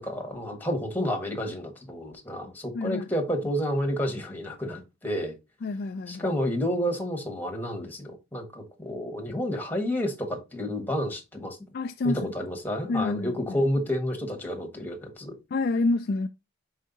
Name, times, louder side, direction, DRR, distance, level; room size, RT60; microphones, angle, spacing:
voice 1, 0.0-5.3 6.1-11.6 12.0-15.4, equal, 10° left, 1.4 m, -30 dB
voice 2, 2.7-3.1 5.6-6.3 11.7-12.3 12.9-13.6 15.5-16.3, left 3 dB, 45° left, 0.3 m, -28 dB
5.5 x 4.8 x 4.0 m
head